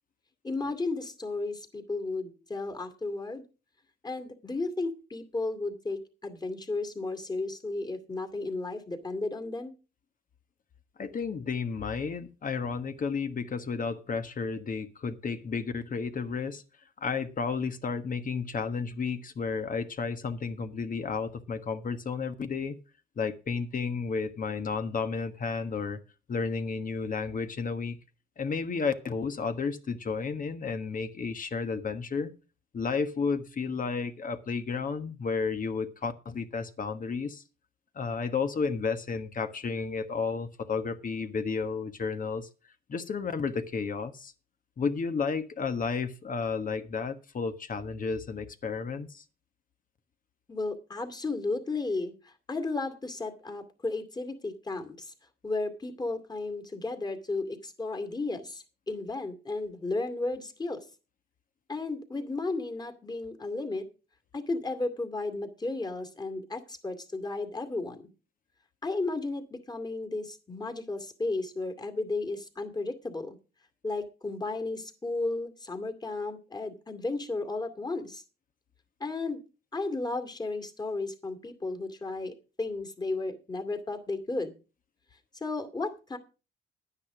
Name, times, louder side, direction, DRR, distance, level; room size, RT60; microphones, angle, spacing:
voice 1, 0.4-3.4 4.0-9.7 50.5-55.1 55.4-60.8 61.7-63.9 64.3-68.1 68.8-73.4 73.8-78.2 79.0-79.4 79.7-84.5 85.4-86.2, left 3 dB, 20° left, 2.4 m, -34 dB
voice 2, 11.0-16.6 17.0-22.8 23.2-26.0 26.3-28.0 28.4-32.3 32.7-37.4 37.9-42.5 42.9-44.3 44.8-49.2, left 5 dB, 45° left, 1.5 m, -32 dB
10.5 x 9.8 x 5.0 m
cardioid pair, 90°, 20 cm